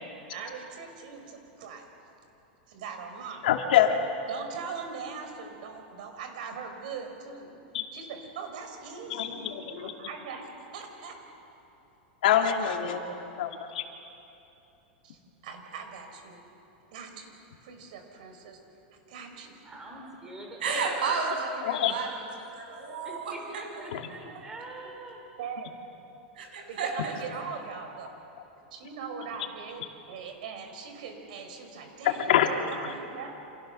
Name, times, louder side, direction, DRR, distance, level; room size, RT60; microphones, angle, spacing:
voice 1, 0.3-1.9 2.7-3.4 4.3-7.5 7.9-9.3 9.8-11.2 12.7-13.2 15.0-16.4 16.9-17.4 17.6-18.6 19.1-19.5 21.8-21.9 25.4-25.7 26.7-28.1 28.7-29.8 30.1-33.3, right 6 dB, 55° right, 5 dB, 5.0 m, -41 dB
voice 2, 3.4-4.0 7.7-7.8 9.1-9.9 12.2-13.0 13.4-13.8 21.6-21.9 23.9-24.1 32.0-32.5, left 10 dB, 65° left, 4 dB, 2.5 m, -25 dB
voice 3, 9.0-10.3 19.6-21.2 23.0-25.2, right 2 dB, 10° right, 0 dB, 3.8 m, -45 dB
voice 4, 20.6-22.1 22.5-23.3 26.4-27.1, right 4 dB, 80° right, 2 dB, 7.7 m, -31 dB
29.5 x 28.0 x 6.9 m, 2.9 s
supercardioid pair, 180°, 5 cm